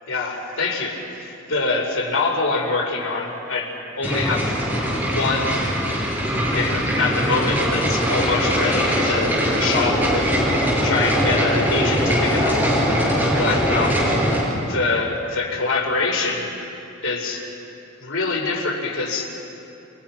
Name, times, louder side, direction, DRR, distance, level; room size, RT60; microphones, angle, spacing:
voice 1, 0.1-4.6 5.1-5.6 6.5-10.3 10.8-12.6 13.4-14.0 14.7-16.5 17.0-17.4 18.0-19.3, left 3 dB, 85° left, 0 dB, 5.2 m, -24 dB
sound 1, 4.0-14.4, equal, 10° right, 7.9 m, -21 dB
29.5 x 29.5 x 6.1 m, 2.8 s
head